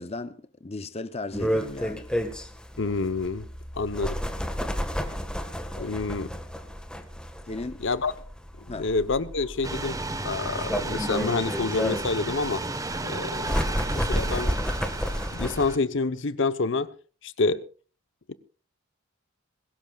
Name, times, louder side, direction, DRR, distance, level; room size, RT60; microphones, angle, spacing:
voice 1, 0.0-2.1 5.7-6.0 7.5-7.8 8.7-8.9, left 2 dB, 30° left, 0.7 m, -36 dB
sound 1, 1.3-15.8, equal, 5° left, 1.6 m, -31 dB
voice 2, 2.8-3.5 3.8-4.2 5.8-6.3 7.8-8.1 8.6-10.0 10.2-12.6 13.0-13.6 13.9-14.6 15.3-16.9 17.2-17.6 18.3-18.4, left 3 dB, 65° left, 1.0 m, -27 dB
sound 2, 9.6-15.8, right 2 dB, 15° right, 1.2 m, -33 dB
21.5 x 18.0 x 2.4 m
head